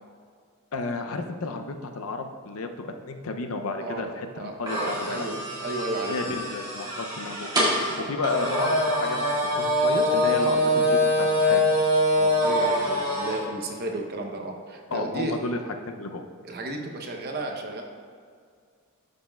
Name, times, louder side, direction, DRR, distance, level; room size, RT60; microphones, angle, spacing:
voice 1, 0.7-5.3 6.1-7.5 7.8-11.7 14.9-15.6 15.9-16.2, left 3 dB, 65° left, 6 dB, 0.5 m, -32 dB
voice 2, 4.4-6.4 12.1-15.3 16.4-17.8, right 2 dB, 45° right, 2 dB, 0.8 m, -33 dB
sound 1, 4.6-13.4, left 1 dB, 20° right, 1.6 m, -24 dB
11.5 x 5.2 x 2.3 m, 2.1 s
head